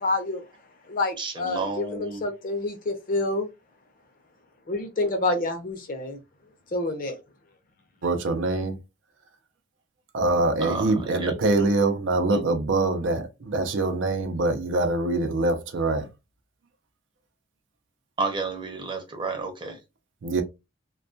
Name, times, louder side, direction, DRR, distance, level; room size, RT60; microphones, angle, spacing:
voice 1, 0.0-0.4 0.9-3.5 4.7-6.2 6.7-7.2, left 2 dB, 45° left, 0.5 m, -28 dB
voice 2, 1.2-2.3 10.6-11.7 12.1-12.4 18.2-19.8, right 3 dB, 25° right, 0.6 m, -31 dB
voice 3, 8.0-8.8 10.1-16.1 20.2-20.4, right 2 dB, 90° right, 0.5 m, -24 dB
2.2 x 2.2 x 2.5 m
head